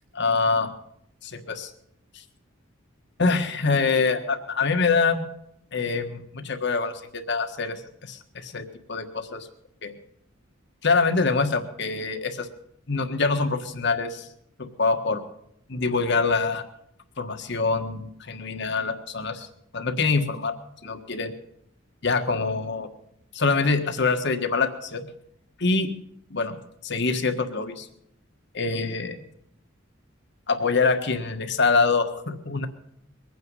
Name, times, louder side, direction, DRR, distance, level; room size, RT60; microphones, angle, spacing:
voice 1, 0.1-0.7 1.2-1.7 3.2-5.2 5.7-7.8 8.1-9.5 9.8-9.9 10.8-12.5 12.9-14.2 14.6-15.2 15.7-16.6 17.2-19.5 19.7-20.6 20.8-21.3 22.0-22.9 23.3-25.1 25.6-25.9 26.3-26.6 26.8-27.9 28.5-29.2 30.5-32.7, left 4 dB, 60° left, 8 dB, 1.5 m, -25 dB
22.0 x 9.3 x 5.5 m, 0.74 s
head